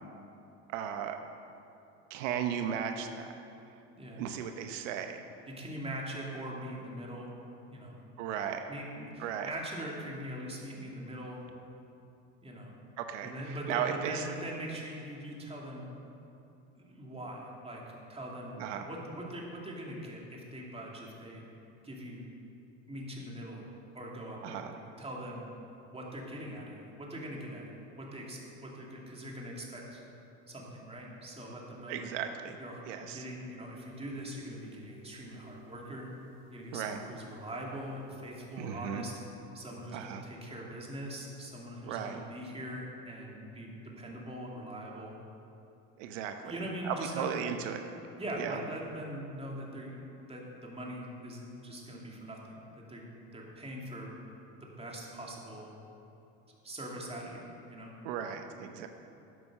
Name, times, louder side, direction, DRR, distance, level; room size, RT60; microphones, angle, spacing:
voice 1, 0.7-1.2 2.1-3.3 4.1-5.2 8.2-8.6 9.2-9.5 13.0-14.3 18.6-18.8 24.4-24.7 31.9-32.6 32.9-33.2 36.7-37.0 38.6-39.0 39.9-40.2 41.8-42.2 46.0-46.5 46.8-47.8 48.4-48.6 58.0-58.9, right 8 dB, 90° right, 6 dB, 0.8 m, -36 dB
voice 2, 4.0-4.3 5.5-7.3 7.7-8.0 8.7-11.4 12.4-12.7 13.2-15.8 16.7-17.8 18.1-21.4 21.8-22.2 22.9-23.7 23.9-24.6 25.0-25.4 25.9-27.7 28.0-30.0 30.5-32.1 32.6-36.1 36.5-39.2 39.5-45.1 46.4-47.3 48.2-50.0 50.3-53.0 53.3-54.1 54.6-55.7 56.6-57.9, right 1 dB, 15° right, -2 dB, 2.6 m, -42 dB
sound 1, 33.9-39.2, left 3 dB, 80° left, 1.5 m, -56 dB
11.0 x 8.0 x 6.6 m, 2.8 s
supercardioid pair, 105°, 35 cm